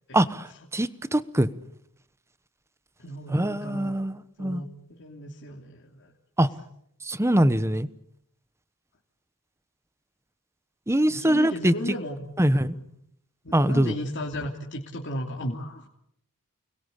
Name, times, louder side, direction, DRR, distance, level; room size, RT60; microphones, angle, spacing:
voice 1, 0.7-1.5 3.3-4.6 6.4-6.5 7.1-7.9 10.9-11.7 12.4-12.7 13.5-13.9, right 1 dB, 10° right, 14 dB, 1.1 m, -23 dB
voice 2, 3.0-4.0 4.4-6.1 11.1-12.3 12.6-12.9 13.4-15.9, equal, 55° left, -1 dB, 3.0 m, -35 dB
30.0 x 21.5 x 8.4 m, 0.74 s
head